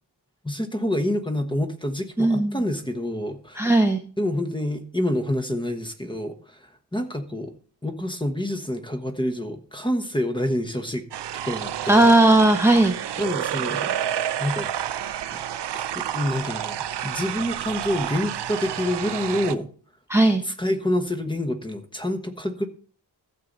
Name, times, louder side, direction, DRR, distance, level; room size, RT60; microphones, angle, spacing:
voice 1, 0.4-3.7 4.2-7.5 7.8-11.0 11.4-12.1 13.2-13.9 14.4-14.7 15.7-16.8 17.0-19.7 20.4-22.7, left 1 dB, 10° left, 8 dB, 1.2 m, -27 dB
voice 2, 2.2-2.6 3.6-4.0 11.9-12.9 20.1-20.4, right 2 dB, 5° right, 4 dB, 0.8 m, -17 dB
sound 1, 11.1-19.5, right 10 dB, 75° right, 0.6 m, -29 dB
13.5 x 7.7 x 4.0 m, 0.42 s
wide cardioid pair, 115°, 41 cm